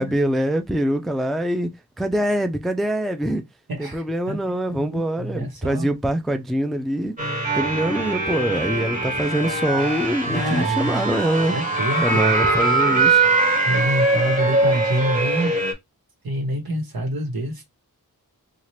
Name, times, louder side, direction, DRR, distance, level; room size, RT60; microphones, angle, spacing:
voice 1, 0.0-1.7 2.0-3.4 3.8-7.1 7.5-11.5 12.0-13.2, right 1 dB, ahead, 0.4 m, -24 dB
voice 2, 3.7-5.9 7.8-8.0 10.3-11.1 11.5-12.3 13.6-15.6 16.2-17.6, right 1 dB, 70° right, 1.3 m, -27 dB
sound 1, 7.2-15.7, right 3 dB, 20° right, 1.3 m, -22 dB
2.8 x 2.4 x 3.2 m
cardioid pair, 45°, 38 cm